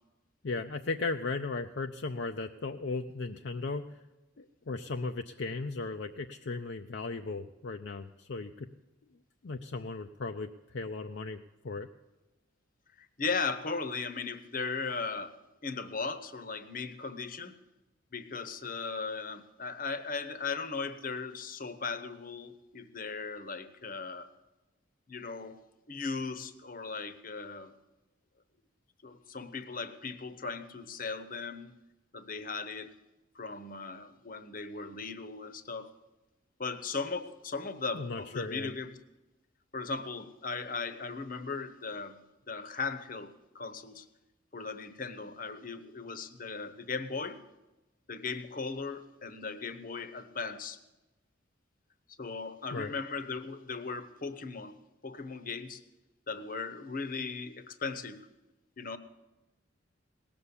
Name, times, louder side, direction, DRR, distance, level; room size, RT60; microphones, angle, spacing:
voice 1, 0.4-4.0 4.4-8.7 9.4-11.4 11.6-11.9 37.9-38.7 52.7-52.9, left 3 dB, 60° left, 6 dB, 0.5 m, -36 dB
voice 2, 13.0-15.3 15.6-17.5 18.1-24.3 25.1-25.6 25.9-27.7 29.0-31.7 32.1-32.9 33.3-35.9 36.6-39.0 39.7-42.2 42.5-44.1 44.5-47.4 48.1-50.8 52.2-54.8 55.0-55.8 56.3-58.3 58.8-59.0, left 4 dB, 45° left, 12 dB, 0.9 m, -37 dB
18.0 x 7.0 x 9.8 m, 1.1 s
head